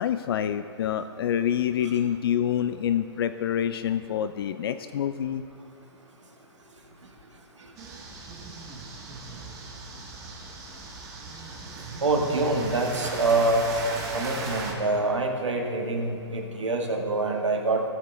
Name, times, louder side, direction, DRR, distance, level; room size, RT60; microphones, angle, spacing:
voice 1, 0.0-5.4, left 9 dB, 55° left, 10 dB, 0.4 m, -27 dB
sound 1, 7.8-14.7, right 3 dB, 20° right, 1.8 m, -38 dB
voice 2, 12.0-13.6 14.1-17.8, right 3 dB, 85° right, 2 dB, 1.7 m, -25 dB
18.5 x 6.7 x 3.4 m, 2.7 s
hypercardioid pair, 135°, 15 cm